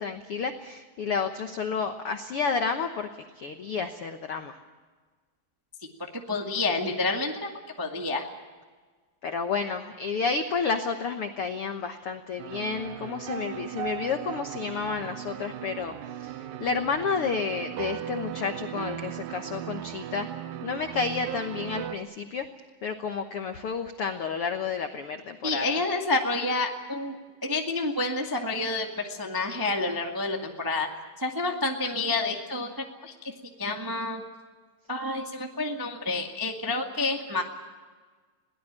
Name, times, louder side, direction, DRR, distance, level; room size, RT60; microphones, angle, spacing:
voice 1, 0.0-3.1 3.3-4.5 9.2-15.9 16.2-20.3 20.6-22.5 22.8-25.8, left 5 dB, 85° left, 7 dB, 1.2 m, -30 dB
voice 2, 6.3-7.5 7.8-8.3 25.4-27.1 27.4-30.9 31.2-32.7 33.0-33.3 33.6-34.2 34.9-37.4, left 3 dB, 20° right, 2 dB, 0.5 m, -29 dB
sound 1, 12.4-22.0, right 11 dB, 75° right, 2.5 m, -37 dB
22.0 x 18.0 x 8.8 m, 1.4 s
omnidirectional pair, 4.3 m